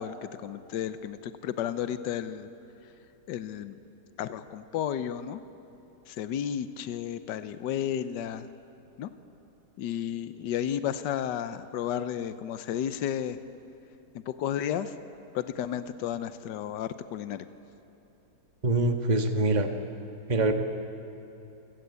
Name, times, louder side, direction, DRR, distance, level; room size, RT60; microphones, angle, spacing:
voice 1, 0.0-2.5 3.3-3.8 4.2-5.4 6.1-8.5 9.0-9.1 9.8-13.4 14.3-14.9 15.3-17.5, left 9 dB, 80° left, 12 dB, 1.4 m, -32 dB
voice 2, 18.6-19.7 20.3-20.5, right 2 dB, 25° right, 6 dB, 1.5 m, -24 dB
27.5 x 17.0 x 8.3 m, 3.0 s
omnidirectional pair, 1.9 m